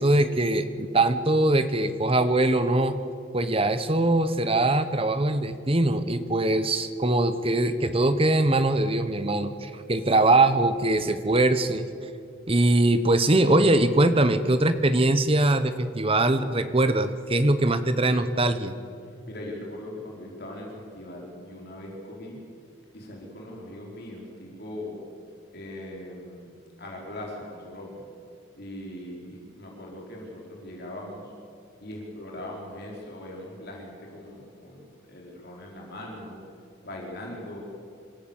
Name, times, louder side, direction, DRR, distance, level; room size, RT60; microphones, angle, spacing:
voice 1, 0.0-3.0 3.3-11.9 12.5-18.8, right 2 dB, 25° right, 11 dB, 1.0 m, -22 dB
voice 2, 19.3-22.4 22.9-25.0 25.5-26.5 26.8-28.0 28.6-31.3 31.8-36.4 36.8-37.6, left 1 dB, 50° left, -2 dB, 4.4 m, -40 dB
26.0 x 14.5 x 7.2 m, 2.5 s
head